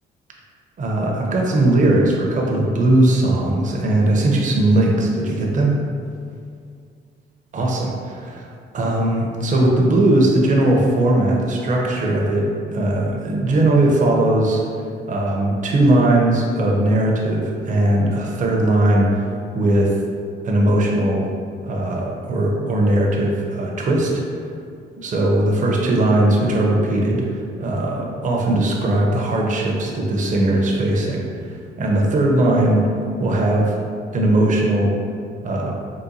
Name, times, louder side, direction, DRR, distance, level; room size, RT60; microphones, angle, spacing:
voice 1, 0.8-5.7 7.5-8.5 8.7-14.6 15.1-19.3 19.5-19.9 20.4-21.3 21.6-24.1 25.0-27.2 27.6-31.2 31.8-32.8 33.2-33.8 34.1-34.9 35.4-35.7, right 1 dB, 40° right, -1 dB, 0.5 m, -19 dB
3.8 x 2.2 x 2.6 m, 2.3 s
cardioid pair, 90°, 20 cm